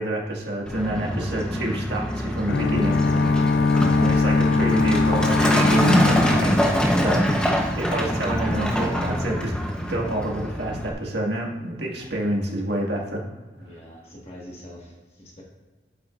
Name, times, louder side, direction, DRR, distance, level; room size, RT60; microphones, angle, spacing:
voice 1, 0.0-3.0 4.0-9.5 9.9-13.2 13.6-13.8, right 1 dB, 80° right, -1 dB, 1.8 m, -28 dB
Truck, 0.7-10.9, equal, 5° left, 0.8 m, -24 dB
sound 1, 2.5-7.5, left 3 dB, 65° left, 0.4 m, -21 dB
voice 2, 6.6-7.1 11.5-11.8 13.6-15.4, left 1 dB, 35° left, -3 dB, 1.5 m, -45 dB
9.3 x 8.8 x 2.5 m, 1.3 s
head